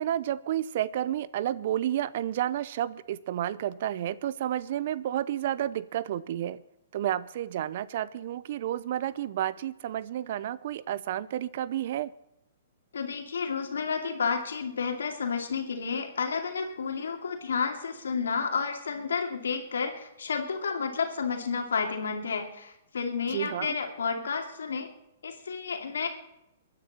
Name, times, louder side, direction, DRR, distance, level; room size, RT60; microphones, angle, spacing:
voice 1, 0.0-6.6 6.9-12.1 23.3-23.8, right 11 dB, 55° right, 18 dB, 0.7 m, -31 dB
voice 2, 12.9-24.9 25.2-26.1, left 5 dB, 75° left, 3 dB, 2.6 m, -31 dB
23.0 x 10.0 x 4.3 m, 0.86 s
hypercardioid pair, 120°, 0 cm